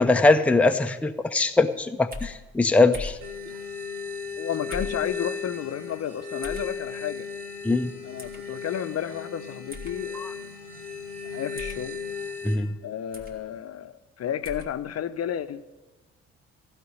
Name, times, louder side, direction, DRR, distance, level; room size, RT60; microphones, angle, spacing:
voice 1, 0.0-3.2 7.6-7.9 10.1-10.3 12.4-12.7, left 3 dB, 5° left, 7 dB, 0.7 m, -21 dB
sound 1, 2.1-2.3 2.9-3.2 4.7-5.0 6.4-6.7 8.2-8.4 9.7-9.9 11.5-11.8 13.1-13.4 14.4-14.7, left 2 dB, 25° right, 2.3 m, -37 dB
sound 2, 3.2-12.5, left 5 dB, 85° right, 1.4 m, -36 dB
voice 2, 4.4-7.3 8.0-10.5 11.2-12.0 12.8-15.6, left 9 dB, 45° left, 10 dB, 0.8 m, -32 dB
15.5 x 5.2 x 9.6 m, 1.1 s
figure-of-eight pair, 45°, 35 cm